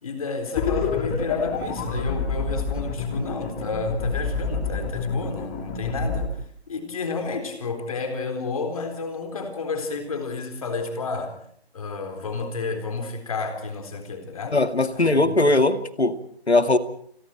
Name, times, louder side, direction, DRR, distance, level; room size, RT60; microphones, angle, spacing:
voice 1, 0.0-6.3 6.7-11.4 11.7-14.6 14.9-15.4, left 4 dB, 35° left, 7 dB, 4.1 m, -31 dB
sound 1, 0.5-6.3, left 4 dB, 10° left, 1.7 m, -27 dB
voice 2, 14.5-16.2 16.5-16.8, left 2 dB, 75° left, 9 dB, 2.2 m, -19 dB
29.0 x 23.0 x 4.5 m, 0.62 s
figure-of-eight pair, 160°, 33 cm